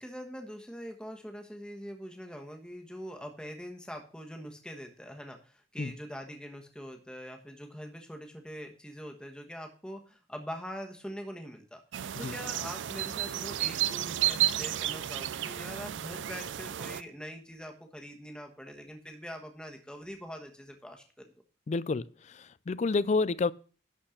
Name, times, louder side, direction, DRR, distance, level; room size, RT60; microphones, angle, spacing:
voice 1, 0.0-11.8 12.2-21.3, equal, 5° left, 1.2 m, -43 dB
sound 1, 11.9-17.0, right 12 dB, 80° right, 0.4 m, -32 dB
voice 2, 21.7-23.5, left 3 dB, 40° left, 0.3 m, -29 dB
11.5 x 4.4 x 6.4 m
head